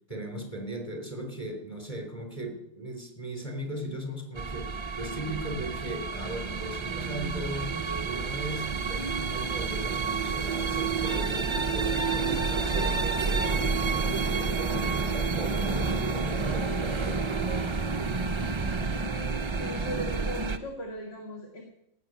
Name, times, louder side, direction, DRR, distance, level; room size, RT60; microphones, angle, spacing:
voice 1, 0.1-7.7 8.0-17.2, right 1 dB, 25° left, 3 dB, 3.6 m, -38 dB
sound 1, 4.4-20.6, right 4 dB, 30° right, 0.6 m, -29 dB
voice 2, 19.5-21.6, equal, 50° left, 1 dB, 2.2 m, -37 dB
17.5 x 6.6 x 9.2 m, 0.82 s
omnidirectional pair, 1.4 m